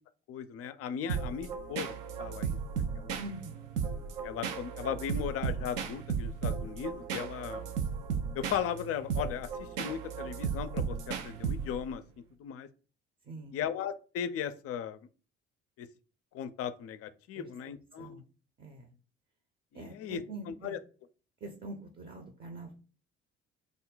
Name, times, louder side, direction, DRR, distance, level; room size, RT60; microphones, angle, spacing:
voice 1, 0.3-3.2 4.2-7.7 8.3-12.0 12.4-12.7 13.5-15.0 15.8-15.9 16.3-18.2 19.7-20.8, left 8 dB, 45° left, 12 dB, 0.4 m, -37 dB
sound 1, 1.1-12.0, right 6 dB, 60° right, 0.6 m, -35 dB
voice 2, 3.2-3.8 13.2-13.6 17.3-17.5 18.0-18.2 18.6-18.9 19.7-20.8 21.4-22.7, right 2 dB, 30° right, 4 dB, 0.7 m, -44 dB
3.5 x 2.1 x 3.8 m, 0.36 s
hypercardioid pair, 50°, 34 cm